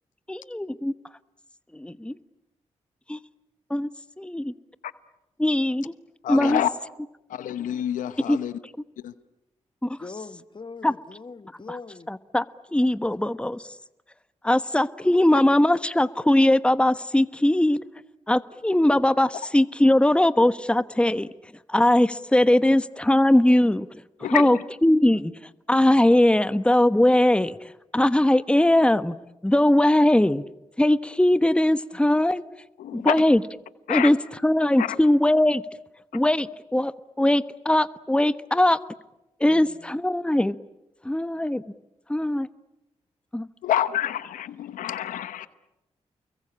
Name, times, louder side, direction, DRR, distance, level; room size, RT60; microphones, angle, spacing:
voice 1, 0.3-0.9 1.7-2.1 3.1-3.2 3.7-3.9 4.2-4.5 5.4-5.9 6.3-6.6 8.3-8.4 9.8-10.0 10.8-10.9 11.7-11.8 12.1-12.4 12.7-13.7 14.4-17.8 18.3-21.3 21.7-25.3 25.7-29.2 29.4-30.4 30.8-32.4 32.9-33.4 33.9-34.2 34.4-35.6 36.1-36.9 37.2-38.8 39.4-40.6 41.0-41.6 42.1-42.5 43.3-43.5, left 1 dB, 10° left, 1.1 m, -20 dB
voice 2, 6.2-6.7 7.3-8.5 9.0-9.1 24.2-24.6 32.8-33.2 33.9-34.1 34.8-35.0 43.6-45.5, left 11 dB, 85° left, 0.9 m, -27 dB
voice 3, 10.0-12.1 31.9-32.0 39.5-39.8, left 4 dB, 40° left, 1.6 m, -41 dB
30.0 x 22.5 x 8.7 m
supercardioid pair, 40°, 13 cm